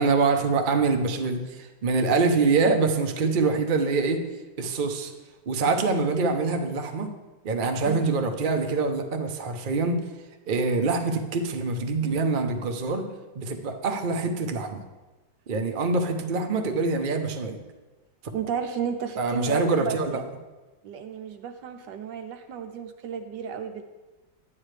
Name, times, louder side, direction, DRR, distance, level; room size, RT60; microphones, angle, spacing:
voice 1, 0.0-4.2 4.6-5.1 5.5-7.1 7.4-10.0 10.5-13.1 13.3-14.8 15.5-17.6 19.2-20.2, right 3 dB, 45° right, 5 dB, 0.6 m, -25 dB
voice 2, 18.3-20.2 20.8-23.8, right 7 dB, 75° right, 7 dB, 1.2 m, -33 dB
11.0 x 9.2 x 3.3 m, 1.2 s
omnidirectional pair, 2.1 m